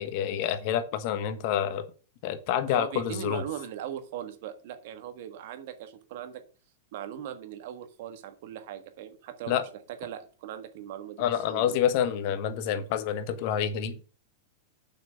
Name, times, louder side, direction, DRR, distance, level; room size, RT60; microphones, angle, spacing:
voice 1, 0.0-1.8 2.2-3.4 9.5-9.6 11.2-14.0, left 9 dB, 50° left, 11 dB, 1.3 m, -28 dB
voice 2, 2.7-6.4 6.9-9.5 9.9-11.7, right 10 dB, 60° right, 8 dB, 1.6 m, -39 dB
7.4 x 5.9 x 5.8 m, 0.36 s
hypercardioid pair, 105°, 0 cm